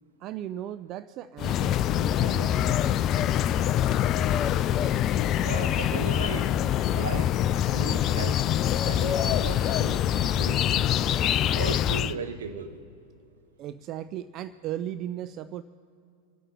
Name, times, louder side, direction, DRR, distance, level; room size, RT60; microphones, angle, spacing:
voice 1, 0.2-2.8 13.6-15.6, right 11 dB, 35° right, 0.4 m, -36 dB
sound 1, 1.4-12.1, left 11 dB, 35° left, 0.4 m, -25 dB
voice 2, 5.4-6.5 6.9-8.4 8.8-10.7 11.5-12.8, right 5 dB, 65° right, 1.1 m, -37 dB
26.5 x 8.9 x 4.1 m
figure-of-eight pair, 90°, 0 cm